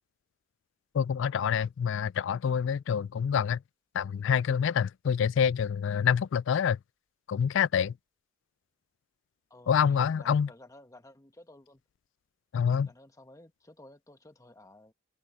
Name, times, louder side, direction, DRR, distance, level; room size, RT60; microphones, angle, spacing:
voice 1, 0.9-3.6 3.9-6.8 7.3-7.9 9.7-10.5 12.5-12.9, left 7 dB, 60° left, 0.3 m, -26 dB
voice 2, 9.5-11.8 12.8-14.9, left 1 dB, 15° left, 1.2 m, -54 dB
head